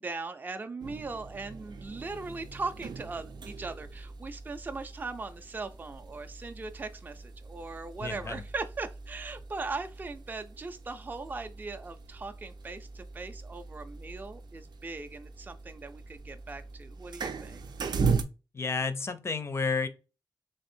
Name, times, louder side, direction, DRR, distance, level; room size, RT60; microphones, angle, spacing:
voice 1, 0.0-17.6, right 3 dB, 25° right, 0.4 m, -39 dB
sound 1, 0.8-18.2, right 4 dB, 85° right, 0.5 m, -39 dB
voice 2, 8.0-8.4 18.5-19.9, left 4 dB, 40° left, 0.5 m, -31 dB
3.4 x 3.2 x 4.2 m
wide cardioid pair, 170°, 7 cm